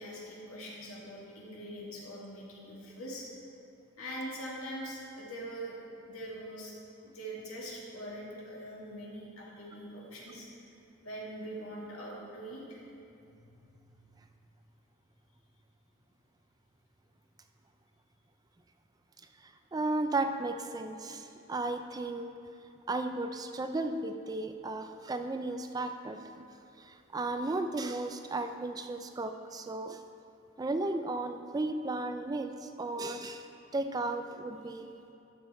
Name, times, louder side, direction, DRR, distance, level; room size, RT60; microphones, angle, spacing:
voice 1, 0.0-3.3 4.0-5.8 6.1-6.7 7.0-10.5 11.0-12.8, right 1 dB, 90° left, -4 dB, 2.1 m, -42 dB
voice 2, 19.4-22.3 22.9-26.2 26.8-30.0 30.6-33.5 33.7-34.9, right 2 dB, 20° right, 7 dB, 0.3 m, -34 dB
11.5 x 6.5 x 4.2 m, 2.7 s
head